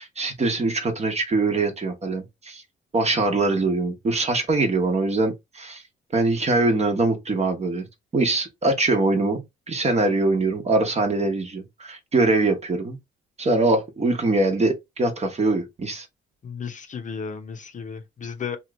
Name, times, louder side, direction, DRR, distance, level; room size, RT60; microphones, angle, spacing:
voice 1, 0.0-2.6 2.9-5.8 6.1-7.9 8.1-13.0 13.4-16.1, right 2 dB, 35° right, 0.9 m, -23 dB
voice 2, 16.4-18.6, left 6 dB, 40° left, 0.7 m, -34 dB
2.9 x 2.4 x 3.0 m
cardioid pair, 90°, 20 cm